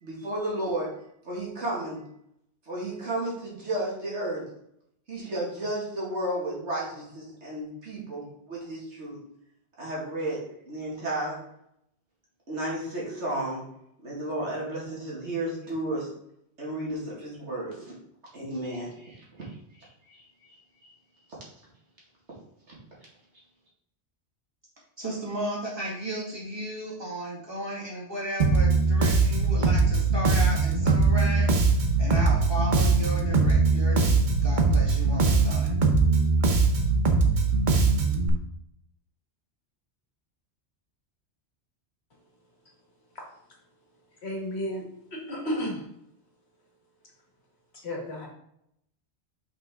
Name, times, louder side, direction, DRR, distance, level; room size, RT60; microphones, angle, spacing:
voice 1, 0.0-0.9 1.2-2.0 2.7-4.4 5.1-9.2 9.8-11.4 12.5-13.6 14.0-16.1 16.6-18.0 18.3-20.2, right 1 dB, 85° right, -5 dB, 2.5 m, -33 dB
voice 2, 25.0-31.6 32.0-35.7, equal, 20° right, -5 dB, 2.2 m, -34 dB
Bass guitar, 28.4-38.3, right 4 dB, 50° right, 0.9 m, -21 dB
voice 3, 44.2-44.8 45.1-45.8 47.8-48.3, equal, 70° left, -1 dB, 2.0 m, -32 dB
5.7 x 5.7 x 3.7 m, 0.75 s
omnidirectional pair, 1.2 m